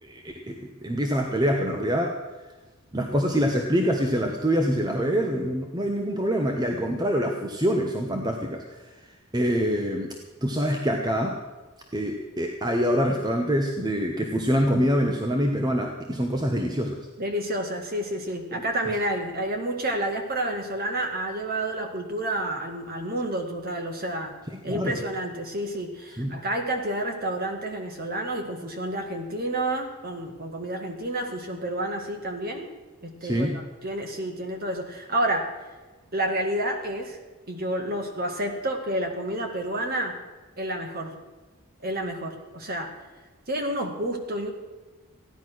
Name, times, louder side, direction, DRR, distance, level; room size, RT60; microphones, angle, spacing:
voice 1, 0.0-2.1 2.9-8.6 9.3-10.2 10.4-11.4 11.9-17.0 18.5-18.6 24.5-25.0 26.2-26.3 33.2-33.6, equal, 20° right, 2 dB, 1.0 m, -25 dB
voice 2, 17.2-24.3 24.6-32.7 33.0-35.5 36.1-37.2 37.5-40.1 40.6-41.1 41.8-42.9 43.5-44.5, right 1 dB, 40° right, 4 dB, 1.9 m, -29 dB
15.5 x 10.5 x 6.2 m, 1.2 s
head